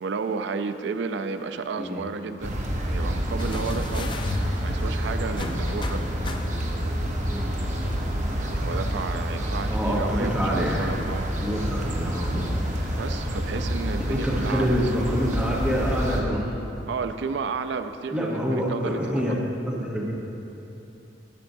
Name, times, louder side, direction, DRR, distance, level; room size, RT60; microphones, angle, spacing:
voice 1, 0.0-4.1 4.6-6.1 8.3-11.3 13.0-14.9 16.9-19.4, right 4 dB, 70° right, 9 dB, 0.4 m, -32 dB
sound 1, 2.4-16.2, equal, 40° right, 0.8 m, -28 dB
sound 2, 3.4-6.9 8.1-8.2, left 2 dB, 25° left, 0.4 m, -34 dB
voice 2, 9.7-11.0 11.4-12.5 14.1-16.5 18.1-19.4 19.7-20.2, equal, 5° right, -4 dB, 0.8 m, -27 dB
12.0 x 7.5 x 2.6 m, 2.8 s
head